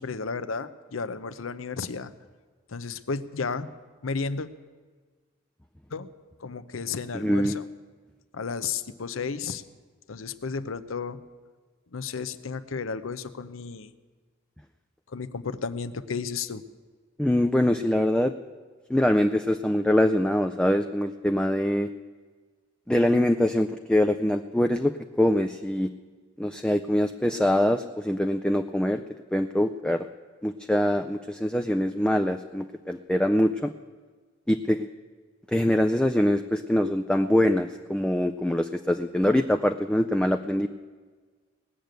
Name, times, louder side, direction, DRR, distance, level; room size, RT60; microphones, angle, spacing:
voice 1, 0.0-2.1 2.7-3.7 4.0-4.5 5.9-6.1 6.4-7.7 8.3-9.6 10.1-11.2 11.9-13.9 15.1-16.6, left 5 dB, 80° left, 13 dB, 0.7 m, -33 dB
voice 2, 7.1-7.6 17.2-18.3 18.9-21.9 22.9-24.9 25.2-25.9 26.4-29.0 29.3-30.1 30.4-33.7 34.5-34.9 35.5-40.7, left 1 dB, 5° left, 7 dB, 0.4 m, -24 dB
18.5 x 6.7 x 9.0 m, 1.5 s
head